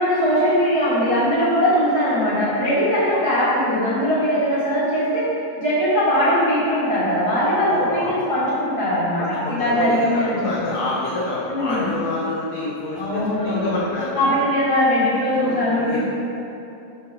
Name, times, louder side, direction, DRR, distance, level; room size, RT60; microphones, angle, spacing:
voice 1, 0.0-5.2 5.6-10.5 11.5-11.9 13.0-13.7 14.1-16.0, equal, 20° right, -9 dB, 0.7 m, -20 dB
voice 2, 7.7-8.2 9.2-14.2 15.4-16.0, left 2 dB, 80° left, -5 dB, 1.5 m, -27 dB
9.3 x 4.7 x 6.3 m, 2.8 s
omnidirectional pair, 4.5 m